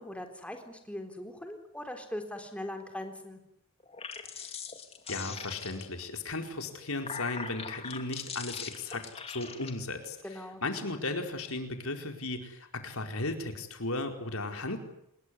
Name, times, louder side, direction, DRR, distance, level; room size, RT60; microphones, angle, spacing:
voice 1, 0.0-3.4 10.2-10.6, left 1 dB, 5° left, 5 dB, 3.9 m, -40 dB
sound 1, 3.8-6.0 6.7-9.7, left 5 dB, 30° left, 2.6 m, -41 dB
voice 2, 5.1-14.8, left 2 dB, 75° left, 5 dB, 4.6 m, -36 dB
27.0 x 21.5 x 9.8 m, 0.78 s
head